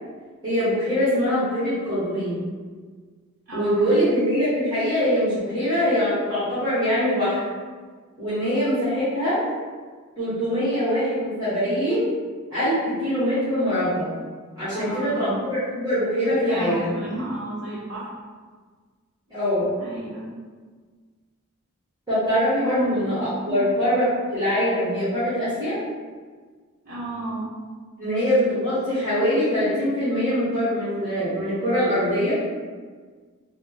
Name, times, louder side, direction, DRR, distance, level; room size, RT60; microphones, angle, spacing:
voice 1, 0.4-2.4 3.5-7.4 8.2-9.4 10.2-12.1 12.5-14.1 14.6-16.9 19.3-19.7 22.1-25.8 28.0-32.3, equal, 20° right, -15 dB, 1.2 m, -23 dB
voice 2, 3.5-4.0 14.7-15.5 16.3-18.1 19.8-20.3 22.6-23.2 23.5-23.6 26.8-27.5, right 1 dB, 45° right, -10 dB, 0.7 m, -31 dB
3.4 x 2.0 x 3.8 m, 1.5 s
head